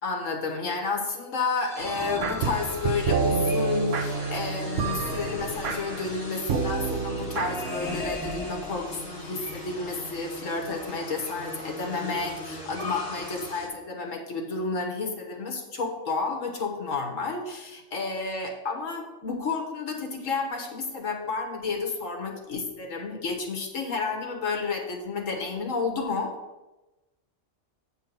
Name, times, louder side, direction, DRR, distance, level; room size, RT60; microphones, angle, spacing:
voice 1, 0.0-26.3, left 4 dB, 70° left, 2 dB, 1.7 m, -31 dB
sound 1, 1.6-3.3 4.6-6.2 7.4-9.3, left 1 dB, ahead, 1.4 m, -37 dB
sound 2, 1.8-7.7, right 5 dB, 65° right, 1.2 m, -29 dB
sound 3, 2.4-13.7, left 1 dB, 30° left, 2.0 m, -40 dB
8.9 x 4.6 x 5.8 m, 1.1 s
omnidirectional pair, 1.4 m